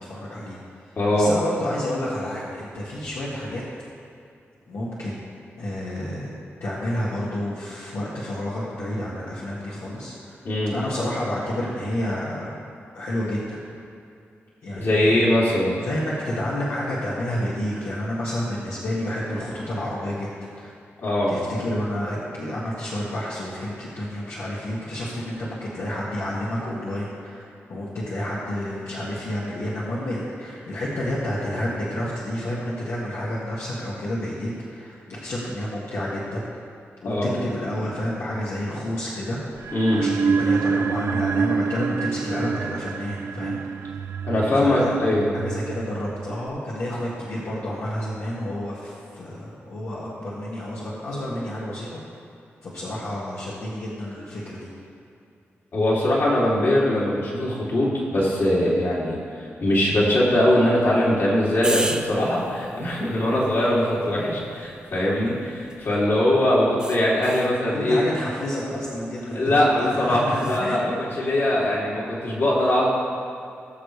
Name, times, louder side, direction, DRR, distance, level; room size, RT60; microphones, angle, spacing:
voice 1, 0.0-3.6 4.7-5.3 5.6-6.3 6.6-10.4 10.7-12.5 12.9-13.6 14.6-15.3 15.8-20.7 21.3-27.4 27.7-36.4 37.0-44.0 44.5-45.0 45.3-52.3 52.6-54.7 67.6-70.8, left 1 dB, 80° left, -8 dB, 1.9 m, -30 dB
voice 2, 1.0-1.3 10.4-10.7 14.8-15.7 21.0-21.3 37.0-37.3 39.7-40.0 44.2-45.3 55.7-59.2 59.6-68.0 69.3-72.9, left 1 dB, 60° left, -6 dB, 2.8 m, -21 dB
sound 1, 39.6-46.5, right 6 dB, 80° right, 0.4 m, -27 dB
sound 2, 61.6-66.0 66.8-67.6 70.3-70.7, right 2 dB, 20° right, 0.7 m, -35 dB
19.0 x 6.7 x 3.3 m, 2.5 s
wide cardioid pair, 100°, 5 cm